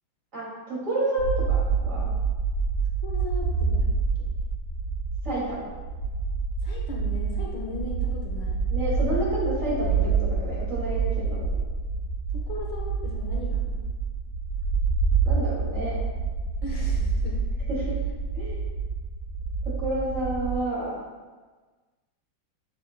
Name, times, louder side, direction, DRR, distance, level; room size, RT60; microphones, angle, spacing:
voice 1, 0.3-2.1 5.2-5.7 8.7-11.5 15.2-16.0 17.7-18.0 18.3-18.6 19.8-21.0, right 1 dB, 40° right, -7 dB, 2.6 m, -30 dB
sound 1, 1.2-20.6, right 4 dB, 85° right, 1.9 m, -27 dB
voice 2, 3.0-3.9 6.6-8.6 12.3-13.9 16.6-17.4, left 2 dB, 65° left, -2 dB, 1.7 m, -38 dB
8.3 x 7.3 x 2.2 m, 1.3 s
omnidirectional pair, 2.2 m